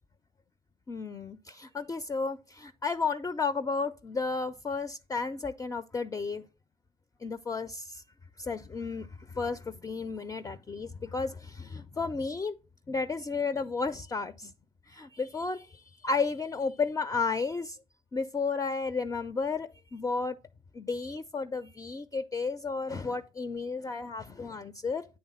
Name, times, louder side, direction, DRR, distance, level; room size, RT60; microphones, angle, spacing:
voice 1, 0.9-6.4 7.2-8.0 8.4-12.5 12.9-14.5 14.9-17.8 18.1-20.4 20.7-25.1, left 4 dB, 20° left, 0.4 m, -33 dB
8.7 x 3.5 x 4.0 m
hypercardioid pair, 50°, 18 cm